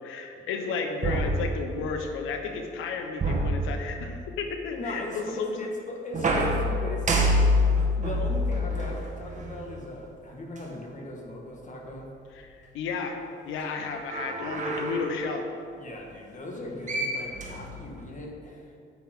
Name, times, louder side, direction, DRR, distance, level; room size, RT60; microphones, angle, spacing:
voice 1, 0.0-5.6 12.3-13.2 13.4-15.4, left 5 dB, 90° left, 5 dB, 1.1 m, -33 dB
sound 1, 1.0-2.1 3.2-4.3 6.1-9.7 10.6-10.7 13.9-15.2 16.6-16.7 16.9-18.1, equal, 40° right, 1.7 m, -27 dB
voice 2, 4.8-7.3 7.9-12.1 15.7-18.8, left 2 dB, 40° left, 0 dB, 1.9 m, -38 dB
10.5 x 8.3 x 3.8 m, 2.4 s
cardioid pair, 90°, 20 cm